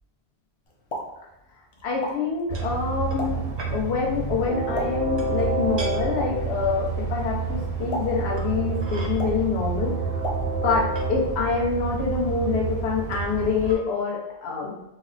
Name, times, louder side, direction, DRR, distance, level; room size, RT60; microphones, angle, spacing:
Explosion, 0.7-10.9, equal, 45° left, 0.4 m, -39 dB
voice 1, 1.8-3.4 3.7-10.2 10.6-14.7, left 4 dB, 80° left, -3 dB, 1.0 m, -26 dB
sound 1, 2.5-2.7 3.1-3.3 3.6-3.8 5.2-5.4 5.8-5.9 7.2-7.3 8.4-9.1 10.0-10.1 10.4-11.1 11.9-12.0 13.1-13.4 13.6-13.8, right 2 dB, 40° right, 0.4 m, -39 dB
Train, 2.5-13.7, right 4 dB, 80° right, 0.8 m, -28 dB
4.0 x 2.0 x 2.5 m, 0.88 s
omnidirectional pair, 1.1 m